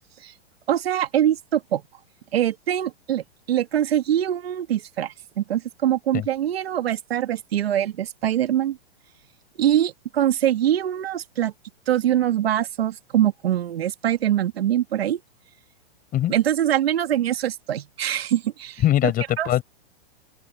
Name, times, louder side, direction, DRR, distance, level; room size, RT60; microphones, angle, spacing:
voice 1, 0.7-1.8 2.3-8.8 9.6-11.5 11.9-15.2 16.3-18.8 19.4-19.6, right 11 dB, 75° right, 2.4 m, -23 dB
voice 2, 18.8-19.6, left 13 dB, 30° left, 7.6 m, -21 dB
open air
hypercardioid pair, 135°, 31 cm